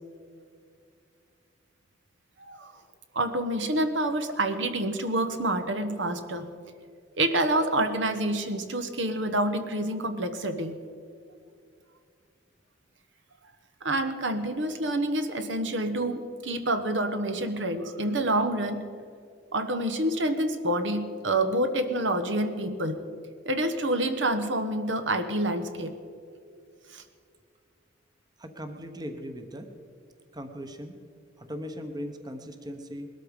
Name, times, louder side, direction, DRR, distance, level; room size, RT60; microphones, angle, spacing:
voice 1, 3.1-6.5 7.2-10.8 13.8-18.8 19.5-23.0 23.5-26.0 26.9-27.0, right 1 dB, 70° right, 8 dB, 1.2 m, -27 dB
voice 2, 28.4-29.7 30.3-31.0 31.4-33.1, equal, 20° right, 6 dB, 1.1 m, -38 dB
20.5 x 13.0 x 5.2 m, 2.3 s
head